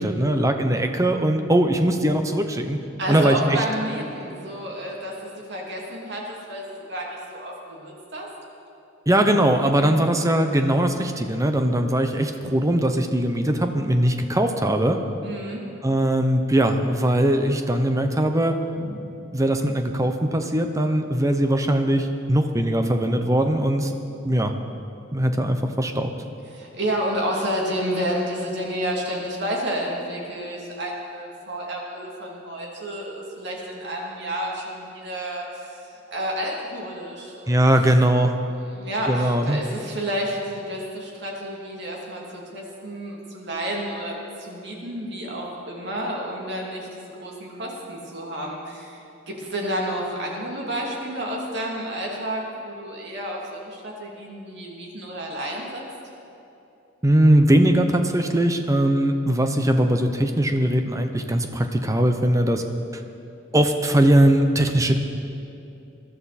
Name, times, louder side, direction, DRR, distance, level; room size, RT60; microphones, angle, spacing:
voice 1, 0.0-2.8 3.1-3.6 9.1-15.0 15.8-23.9 24.2-24.5 25.1-26.1 37.5-38.3 39.1-39.6 57.0-62.6 63.5-65.0, right 1 dB, 15° right, 6 dB, 0.8 m, -20 dB
voice 2, 3.0-8.3 15.2-15.6 26.5-35.8 36.1-37.6 38.7-55.8, equal, 60° right, -2 dB, 2.8 m, -30 dB
21.5 x 12.5 x 4.3 m, 2.7 s
head